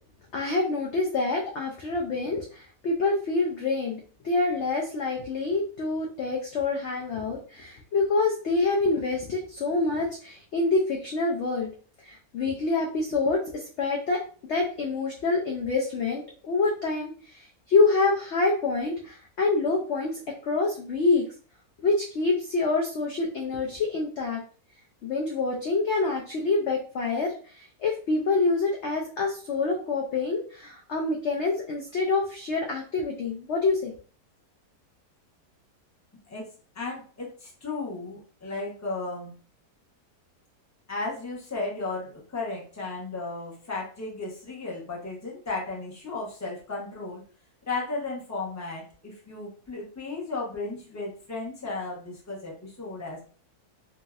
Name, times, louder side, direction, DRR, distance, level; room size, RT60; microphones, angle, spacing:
voice 1, 0.3-11.7 12.0-14.2 14.5-21.3 21.8-24.4 25.0-33.9, left 3 dB, 70° left, -1 dB, 0.6 m, -26 dB
voice 2, 36.7-39.3 40.9-47.2 47.7-53.2, left 3 dB, 15° left, -3 dB, 0.6 m, -34 dB
2.9 x 2.8 x 2.3 m, 0.41 s
omnidirectional pair, 1.7 m